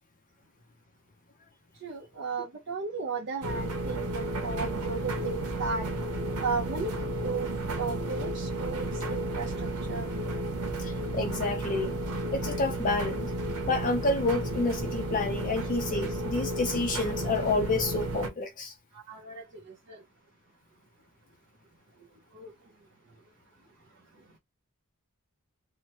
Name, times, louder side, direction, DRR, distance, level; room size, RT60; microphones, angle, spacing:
voice 1, 1.8-5.9 6.4-7.5 7.8-9.5 9.9-10.1 19.1-19.4 19.9-20.0 22.3-22.5, right 4 dB, 55° right, 0.6 m, -34 dB
sound 1, 3.4-18.3, right 1 dB, 90° right, 0.9 m, -33 dB
voice 2, 10.8-11.9 12.3-13.3 13.7-18.7, left 3 dB, 35° left, 0.4 m, -29 dB
2.8 x 2.1 x 2.8 m
head